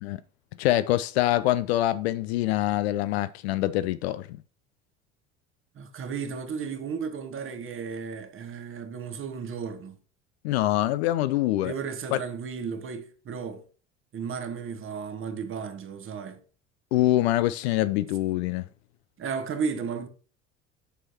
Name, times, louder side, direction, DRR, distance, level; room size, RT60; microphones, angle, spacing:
voice 1, 0.6-4.4 10.4-11.7 12.1-12.2 16.9-18.7, left 15 dB, 60° left, 0.5 m, -25 dB
voice 2, 5.7-10.0 11.6-13.6 14.1-16.4 19.2-20.1, right 6 dB, 35° right, 1.3 m, -34 dB
10.0 x 6.2 x 2.9 m
figure-of-eight pair, 60°, 37 cm